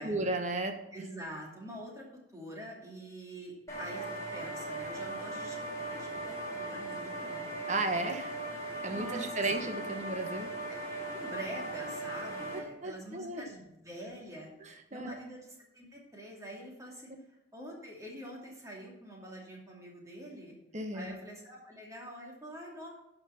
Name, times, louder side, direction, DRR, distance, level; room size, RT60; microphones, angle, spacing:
voice 1, 0.0-0.8 7.7-8.3 8.8-10.5 12.5-13.4 14.6-15.2 20.7-21.1, right 2 dB, 40° right, 6 dB, 1.2 m, -34 dB
voice 2, 0.9-4.1 4.3-7.5 8.9-9.4 9.7-9.9 10.7-17.1 17.5-20.6 20.9-22.9, right 1 dB, 15° right, -2 dB, 2.6 m, -46 dB
sound 1, 3.7-12.6, right 2 dB, 15° left, 3.8 m, -39 dB
11.0 x 5.9 x 5.7 m, 0.88 s
head